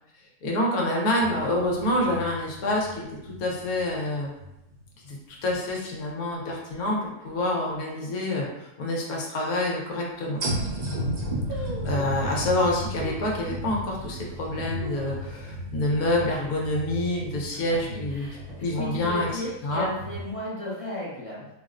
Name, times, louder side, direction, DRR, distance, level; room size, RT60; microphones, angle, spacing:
voice 1, 0.4-4.3 5.0-8.5 8.8-10.4 11.5-18.3 18.6-19.9, left 1 dB, 70° left, -2 dB, 1.2 m, -27 dB
sound 1, 1.2-4.9 5.4-5.5 10.4-20.3, right 1 dB, 60° right, 0.4 m, -34 dB
sound 2, 9.5-9.6 10.2-10.3 10.5-10.9 11.5-12.2 13.0-13.4 13.9-14.0 14.6-15.7 16.0-16.1 16.4-16.8 17.2-17.5 18.2-18.9 19.2-19.3, left 1 dB, 75° right, 1.3 m, -40 dB
voice 2, 17.5-21.5, left 1 dB, 35° left, -7 dB, 0.5 m, -35 dB
4.0 x 2.0 x 2.5 m, 0.89 s
omnidirectional pair, 1.6 m